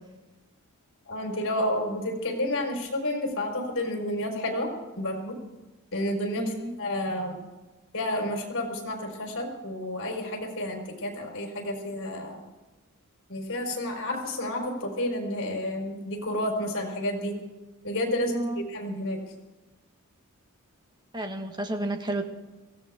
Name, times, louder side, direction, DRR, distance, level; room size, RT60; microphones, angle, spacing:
voice 1, 1.1-4.7 5.0-5.4 5.9-7.4 7.9-12.4 13.3-17.3 17.8-19.2, left 1 dB, 60° left, 2 dB, 4.7 m, -30 dB
voice 2, 6.4-6.8 18.3-18.6 21.1-22.2, right 1 dB, 20° right, 4 dB, 1.6 m, -31 dB
22.5 x 17.0 x 3.7 m, 1.1 s
head